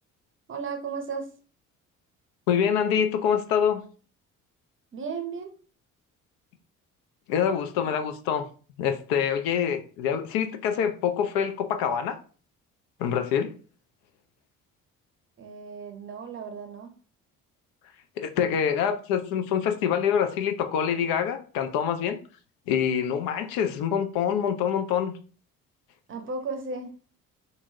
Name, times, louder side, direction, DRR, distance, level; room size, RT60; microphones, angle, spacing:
voice 1, 0.5-1.3 4.9-5.6 15.4-16.9 18.5-18.6 26.1-26.9, right 4 dB, 30° right, 0.6 m, -35 dB
voice 2, 2.5-3.8 7.3-8.5 8.8-12.2 13.0-13.5 18.2-22.2 22.7-25.1, left 8 dB, 60° left, 0.5 m, -25 dB
2.7 x 2.6 x 2.7 m
figure-of-eight pair, 50°, 41 cm